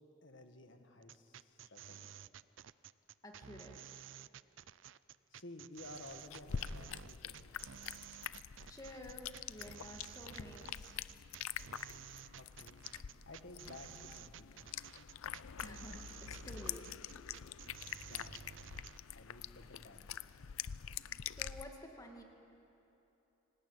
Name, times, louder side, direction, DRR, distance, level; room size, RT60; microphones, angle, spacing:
voice 1, 0.2-2.1 5.3-7.5 12.3-12.8 13.2-14.7 17.9-18.4 19.1-20.2, left 2 dB, 65° left, 6 dB, 1.8 m, -54 dB
sound 1, 1.0-19.0, right 9 dB, 65° right, 0.4 m, -53 dB
voice 2, 3.2-4.1 8.7-11.0 15.6-16.8 21.3-22.2, left 1 dB, 15° left, 2 dB, 2.1 m, -52 dB
sound 2, 5.8-21.6, left 9 dB, 90° left, 0.5 m, -46 dB
25.0 x 18.0 x 9.0 m, 2.9 s
head